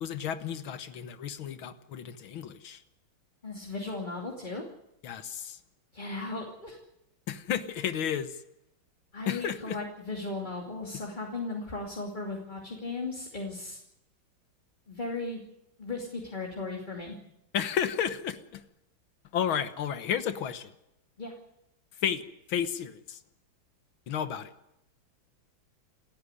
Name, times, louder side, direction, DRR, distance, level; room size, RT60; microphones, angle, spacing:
voice 1, 0.0-2.8 5.0-5.6 7.3-8.4 9.3-9.8 17.5-18.6 19.3-20.7 22.0-22.2 22.5-23.2 24.1-24.5, left 9 dB, 90° left, 11 dB, 2.0 m, -32 dB
voice 2, 3.4-4.6 5.9-6.8 9.1-13.8 14.9-15.4 15.8-17.2 21.2-21.3, left 3 dB, 25° left, 0 dB, 2.9 m, -36 dB
29.0 x 10.5 x 9.8 m, 0.85 s
omnidirectional pair, 2.1 m